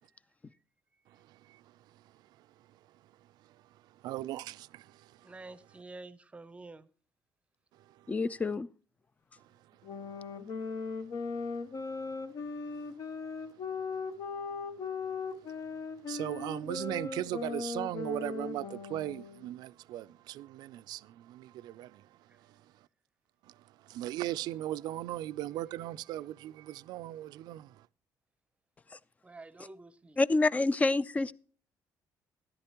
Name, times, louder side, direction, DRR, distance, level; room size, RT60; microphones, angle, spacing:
voice 1, 4.0-5.1 16.1-22.1 23.8-27.7, right 14 dB, 80° right, 0.4 m, -38 dB
voice 2, 5.2-6.9 29.2-30.2, right 3 dB, 15° right, 0.7 m, -48 dB
voice 3, 8.1-8.7 30.2-31.3, left 3 dB, 20° left, 0.4 m, -27 dB
sound 1, 9.8-19.5, left 4 dB, 55° left, 1.1 m, -38 dB
13.5 x 11.5 x 2.9 m
cardioid pair, 120°, 7 cm